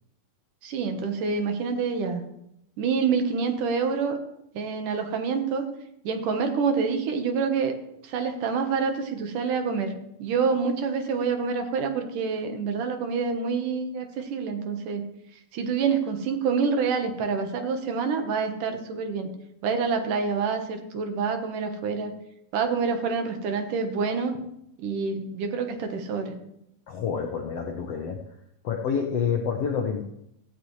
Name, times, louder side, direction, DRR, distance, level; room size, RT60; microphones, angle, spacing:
voice 1, 0.6-2.2 2.8-4.2 4.5-5.6 6.0-7.7 8.0-9.9 10.2-15.1 15.5-19.3 19.6-22.2 22.5-24.3 24.8-26.3, right 5 dB, 70° right, 5 dB, 2.7 m, -27 dB
voice 2, 26.9-28.2 28.6-30.0, left 6 dB, 70° left, 2 dB, 1.5 m, -28 dB
16.0 x 15.0 x 3.2 m, 0.79 s
omnidirectional pair, 4.0 m